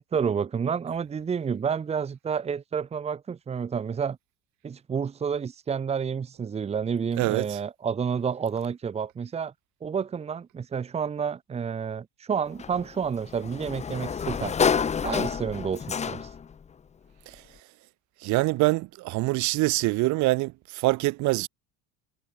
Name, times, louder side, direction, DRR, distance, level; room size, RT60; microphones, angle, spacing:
voice 1, 0.0-4.2 4.6-9.5 9.8-14.5 15.0-16.3, right 6 dB, 20° right, 1.8 m, -30 dB
voice 2, 7.2-7.6 17.3-17.4 18.2-21.5, right 21 dB, 55° right, 2.8 m, -25 dB
Sliding door, 12.6-16.5, left 6 dB, 20° left, 2.2 m, -28 dB
cardioid pair, 170°, 35 cm